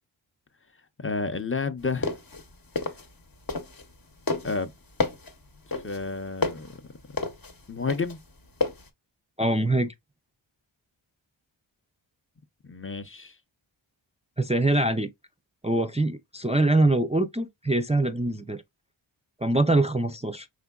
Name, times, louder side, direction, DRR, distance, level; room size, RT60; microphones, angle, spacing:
voice 1, 1.0-2.1 4.4-4.7 5.7-6.9 7.7-8.2 12.6-13.3, left 4 dB, 25° left, 0.6 m, -31 dB
sound 1, 1.8-4.0 4.3-8.9, left 3 dB, 45° left, 0.9 m, -30 dB
voice 2, 9.4-9.9 14.4-15.1 15.6-18.6 19.4-20.5, right 2 dB, 15° right, 0.4 m, -23 dB
4.9 x 3.6 x 2.3 m
wide cardioid pair, 75°, 47 cm